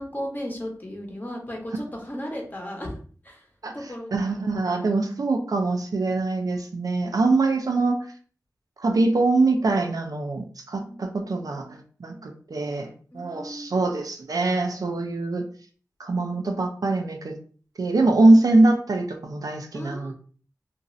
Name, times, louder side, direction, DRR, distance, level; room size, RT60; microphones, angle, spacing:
voice 1, 0.0-3.0 3.2-3.5 3.7-4.3 6.0-6.2 10.8-11.2 13.1-14.0 19.7-20.1, equal, 30° left, 0 dB, 0.9 m, -35 dB
voice 2, 4.1-8.0 8.8-15.4 16.0-17.4 17.8-20.1, right 2 dB, 75° right, 4 dB, 0.5 m, -23 dB
3.0 x 2.6 x 2.5 m, 0.43 s
wide cardioid pair, 75°, 6 cm